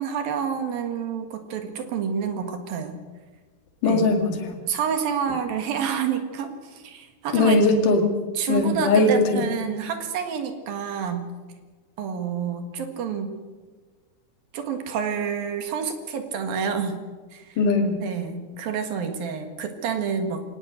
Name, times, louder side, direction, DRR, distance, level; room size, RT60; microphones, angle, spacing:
voice 1, 0.0-3.0 3.9-4.0 4.7-7.7 8.4-11.3 12.0-13.4 14.5-17.0 17.3-17.6 18.0-20.4, right 7 dB, 85° right, 6 dB, 3.7 m, -28 dB
voice 2, 3.8-4.6 7.3-8.1 8.5-9.6 17.6-18.0, left 3 dB, 65° left, 4 dB, 3.7 m, -20 dB
23.0 x 19.0 x 6.5 m, 1.4 s
omnidirectional pair, 4.0 m